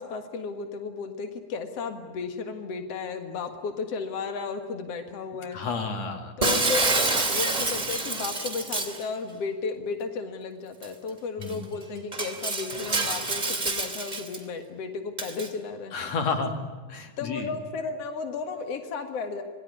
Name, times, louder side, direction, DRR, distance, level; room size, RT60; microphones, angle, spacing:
voice 1, 0.0-5.6 6.4-15.9 17.2-19.4, left 4 dB, 70° left, 7 dB, 1.5 m, -34 dB
voice 2, 5.5-6.3 11.4-11.6 15.9-16.6 16.9-17.5, left 4 dB, 45° left, 6 dB, 2.8 m, -30 dB
Shatter, 6.4-9.0 10.8-10.9 11.4-11.5 12.1-14.4 15.2-15.5, right 2 dB, 15° right, 1.9 m, -27 dB
26.5 x 20.0 x 9.9 m, 1.4 s
omnidirectional pair, 5.5 m